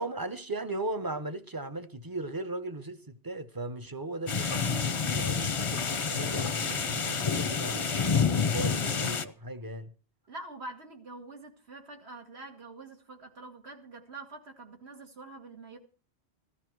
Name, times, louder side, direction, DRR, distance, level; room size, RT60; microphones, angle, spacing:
voice 1, 0.0-9.9, right 2 dB, 20° right, 0.8 m, -37 dB
sound 1, 4.3-9.3, left 6 dB, 35° left, 0.6 m, -28 dB
voice 2, 10.3-15.8, right 2 dB, 70° right, 2.5 m, -45 dB
16.0 x 12.5 x 4.6 m
omnidirectional pair, 1.1 m